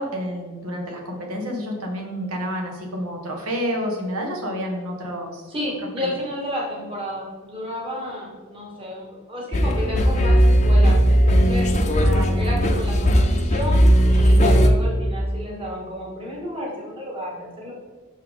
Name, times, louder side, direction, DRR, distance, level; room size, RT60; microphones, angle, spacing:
voice 1, 0.0-5.4 6.0-6.1 11.9-12.4, equal, 75° right, 1 dB, 1.3 m, -29 dB
voice 2, 5.5-11.7 12.4-17.7, equal, 25° right, -4 dB, 1.8 m, -31 dB
sound 1, 9.5-14.7, equal, 30° left, 0.6 m, -17 dB
6.5 x 5.8 x 3.6 m, 1.4 s
head